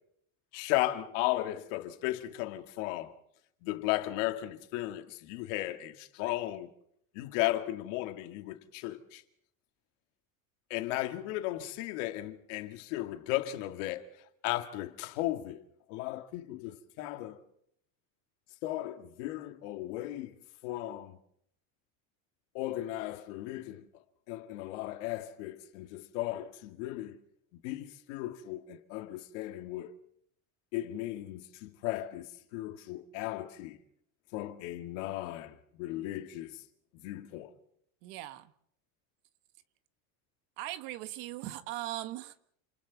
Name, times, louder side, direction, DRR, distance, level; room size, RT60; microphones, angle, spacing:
voice 1, 0.5-3.1 3.6-6.7 7.1-9.2 10.7-14.0 14.4-15.6 15.9-17.4 18.6-20.3 20.6-21.2 22.5-23.9 24.3-27.2 27.6-29.9 30.7-33.8 34.3-36.6 36.9-37.5, left 15 dB, 75° left, 2.2 m, -35 dB
voice 2, 38.0-38.5 40.6-42.5, right 15 dB, 70° right, 1.6 m, -39 dB
28.5 x 28.5 x 4.1 m
cardioid pair, 150°, 37 cm